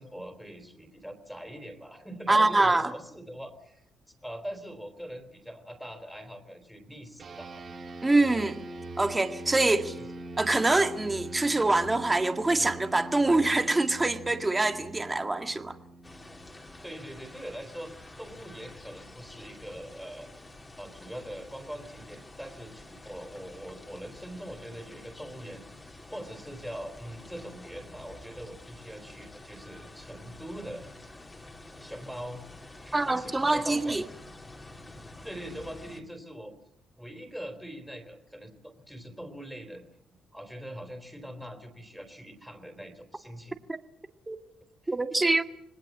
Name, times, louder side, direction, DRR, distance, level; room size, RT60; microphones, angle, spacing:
voice 1, 0.0-3.8 4.2-7.5 10.0-10.1 16.8-17.9 18.2-20.3 20.8-30.8 31.8-32.4 32.8-34.0 35.2-36.5 37.0-39.8 40.3-43.6 44.8-44.9, equal, ahead, 3.8 m, -42 dB
voice 2, 2.3-2.9 8.0-8.6 9.0-10.0 10.4-15.8 32.9-34.0 44.3-44.4 44.9-45.4, right 2 dB, 15° right, 1.9 m, -25 dB
sound 1, 7.2-16.9, right 2 dB, 50° right, 4.1 m, -42 dB
sound 2, 16.0-36.0, left 2 dB, 20° left, 3.5 m, -48 dB
26.5 x 19.0 x 7.5 m
cardioid pair, 90°, 0 cm